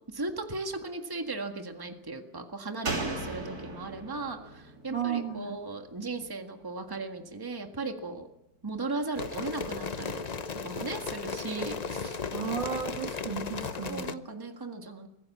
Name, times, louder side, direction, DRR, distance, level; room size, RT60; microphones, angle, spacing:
voice 1, 0.1-8.3 8.6-10.3 10.6-12.2 13.9-15.1, right 3 dB, 10° right, 4 dB, 1.7 m, -37 dB
Slam, 2.8-6.3 6.6-6.7, right 2 dB, 55° right, 3.7 m, -37 dB
voice 2, 4.9-5.6 12.3-14.2, right 7 dB, 85° right, 5 dB, 2.9 m, -34 dB
sound 1, 9.1-14.1, left 5 dB, 55° left, 0.4 m, -35 dB
24.0 x 16.0 x 7.4 m, 0.95 s
omnidirectional pair, 2.0 m